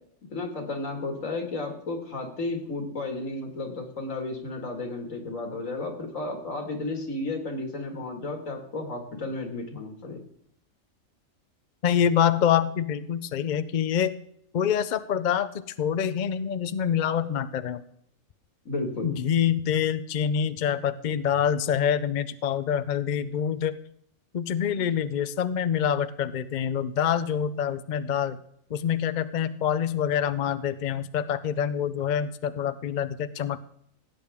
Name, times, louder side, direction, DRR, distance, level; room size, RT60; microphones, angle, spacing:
voice 1, 0.3-10.2 18.7-19.1 24.7-24.8, left 2 dB, 70° left, 4 dB, 2.3 m, -33 dB
voice 2, 11.8-14.1 14.5-15.5 15.8-17.8 19.0-23.8 24.3-28.4 28.7-33.6, left 8 dB, 55° left, 13 dB, 0.5 m, -26 dB
17.0 x 8.7 x 3.5 m, 0.69 s
omnidirectional pair, 1.4 m